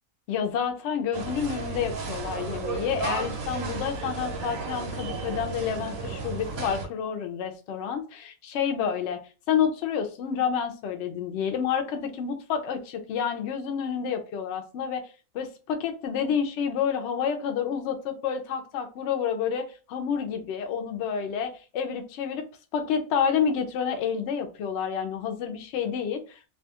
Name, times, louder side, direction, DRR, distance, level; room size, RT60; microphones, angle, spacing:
voice 1, 0.3-9.2 9.5-22.4 22.7-26.5, left 7 dB, 65° left, 5 dB, 0.8 m, -29 dB
sound 1, 1.1-6.9, right 4 dB, 85° right, 1.2 m, -33 dB
2.7 x 2.2 x 2.7 m, 0.34 s
omnidirectional pair, 1.4 m